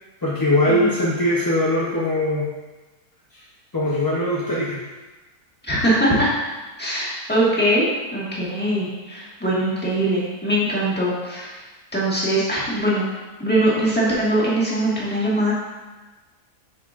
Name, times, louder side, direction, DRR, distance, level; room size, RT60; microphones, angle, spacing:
voice 1, 0.2-2.5 3.7-4.8, left 1 dB, 30° left, -6 dB, 0.4 m, -21 dB
voice 2, 5.7-6.3 6.8-11.5 11.9-13.0 13.4-15.5, right 1 dB, 5° left, -8 dB, 1.5 m, -21 dB
6.9 x 5.7 x 2.5 m, 1.2 s
omnidirectional pair, 1.7 m